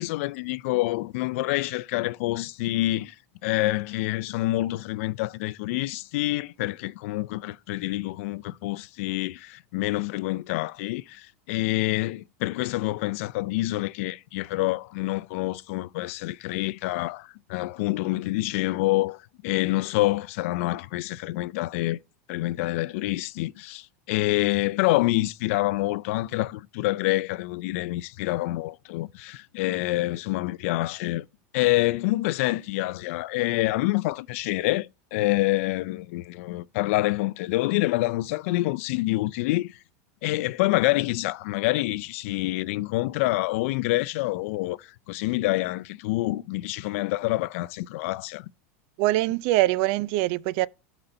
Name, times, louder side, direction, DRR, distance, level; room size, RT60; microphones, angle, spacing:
voice 1, 0.0-3.1 3.4-22.0 22.3-31.3 31.5-39.8 40.2-48.5, left 18 dB, 65° left, 0.4 m, -27 dB
voice 2, 49.0-50.7, right 17 dB, 60° right, 0.4 m, -23 dB
12.0 x 4.0 x 4.4 m
supercardioid pair, 125°, 8 cm